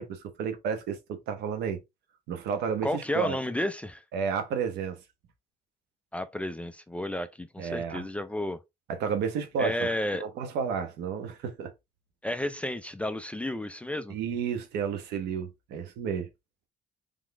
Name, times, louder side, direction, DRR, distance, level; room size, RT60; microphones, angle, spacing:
voice 1, 0.0-1.8 2.3-3.4 4.1-5.0 7.6-8.0 8.9-11.7 14.1-16.3, right 6 dB, 80° right, 1.1 m, -31 dB
voice 2, 2.8-4.0 6.1-8.6 9.6-10.3 12.2-14.1, left 1 dB, 5° left, 0.4 m, -32 dB
3.7 x 3.6 x 3.3 m
cardioid pair, 110°, 17 cm